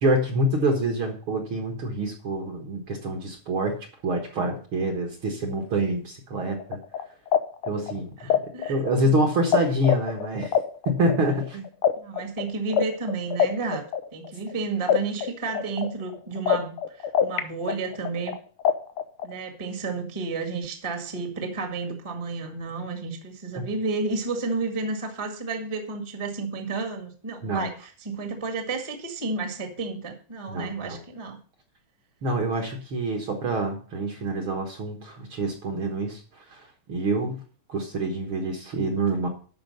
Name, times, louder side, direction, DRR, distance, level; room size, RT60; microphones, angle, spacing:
voice 1, 0.0-3.8 4.0-6.8 7.6-8.4 8.7-10.5 10.8-11.7 23.5-23.6 27.4-27.7 30.5-31.0 32.2-36.2 36.5-37.4 37.7-39.3, right 1 dB, 50° right, 3 dB, 1.9 m, -26 dB
sound 1, 6.6-9.6 9.8-14.5 14.9-17.4 17.7-19.3, left 8 dB, 85° left, 1.2 m, -24 dB
voice 2, 8.2-9.2 12.0-13.8 14.1-18.3 19.2-31.4, right 3 dB, 15° right, 4 dB, 1.2 m, -31 dB
12.0 x 5.0 x 6.5 m, 0.40 s
omnidirectional pair, 3.6 m